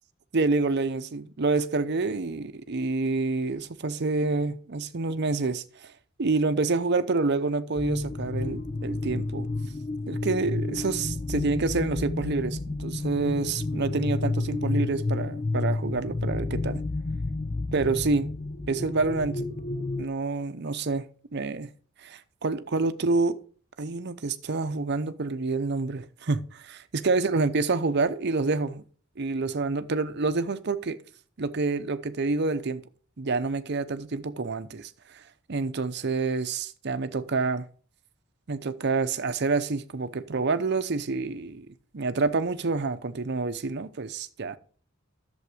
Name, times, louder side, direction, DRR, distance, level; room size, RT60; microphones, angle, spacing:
voice 1, 0.3-5.9 6.2-9.5 10.1-16.8 17.7-18.3 18.7-19.5 20.0-21.0 21.3-21.7 22.0-23.4 23.8-28.8 29.2-31.0 31.4-32.8 33.2-35.2 35.5-37.6 38.5-41.7 41.9-44.6, right 3 dB, 55° right, 0.7 m, -28 dB
sound 1, 7.8-20.1, left 2 dB, 35° left, 0.5 m, -31 dB
11.0 x 7.1 x 5.0 m
head